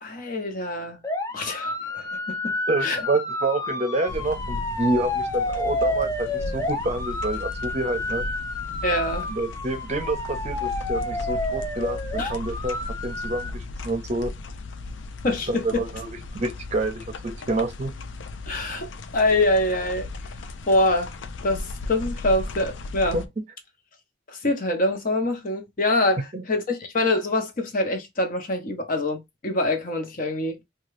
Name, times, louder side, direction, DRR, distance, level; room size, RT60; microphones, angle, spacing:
voice 1, 0.0-1.0 1.3-3.0 8.8-9.3 12.2-12.3 15.2-15.8 18.5-20.1 20.7-21.1 21.4-23.2 24.3-30.6, left 2 dB, 50° left, 0.8 m, -25 dB
sound 1, 1.0-13.5, left 2 dB, 20° left, 0.4 m, -30 dB
voice 2, 2.7-8.2 9.3-12.8 13.0-14.3 15.5-17.9 23.1-23.4 26.3-26.4, right 2 dB, 40° right, 0.6 m, -28 dB
sound 2, 4.1-23.3, left 3 dB, 90° left, 0.4 m, -36 dB
2.8 x 2.3 x 3.1 m
head